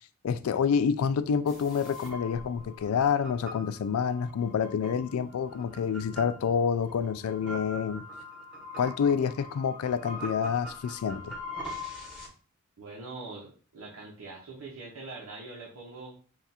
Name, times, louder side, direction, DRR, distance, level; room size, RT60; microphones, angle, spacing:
voice 1, 0.2-8.0 8.8-11.3, left 7 dB, 85° left, 0.4 m, -28 dB
sound 1, 1.5-12.3, left 1 dB, 5° right, 1.2 m, -43 dB
voice 2, 12.8-16.2, right 3 dB, 85° right, 0.9 m, -43 dB
3.4 x 2.4 x 4.2 m
head